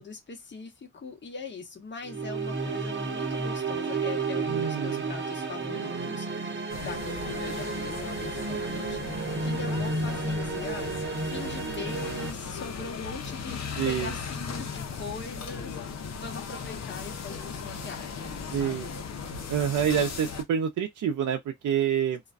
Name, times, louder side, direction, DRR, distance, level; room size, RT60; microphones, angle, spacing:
voice 1, 0.0-9.1 9.4-18.9, left 4 dB, 40° left, 0.9 m, -41 dB
sound 1, 2.0-12.3, right 4 dB, 40° right, 0.8 m, -32 dB
voice 2, 4.5-5.1 13.8-14.1 18.5-18.9 19.5-22.2, right 8 dB, 75° right, 0.5 m, -27 dB
sound 2, 6.7-20.4, left 6 dB, 60° left, 0.7 m, -37 dB
2.4 x 2.2 x 2.4 m
cardioid pair, 75°, 30 cm